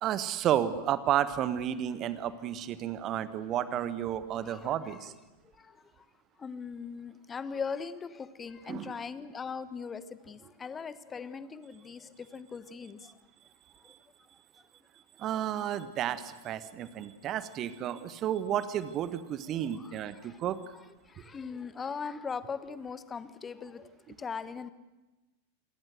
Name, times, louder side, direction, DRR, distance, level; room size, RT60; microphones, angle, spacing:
voice 1, 0.0-5.1 8.7-8.9 15.2-20.6, right 10 dB, 35° right, 14 dB, 1.6 m, -32 dB
voice 2, 4.4-5.1 5.4-6.1 6.4-13.2 13.8-13.9 19.7-20.4 20.7-24.7, left 5 dB, 20° left, 15 dB, 1.2 m, -40 dB
27.0 x 20.5 x 8.1 m, 1.1 s
figure-of-eight pair, 90°, 0 cm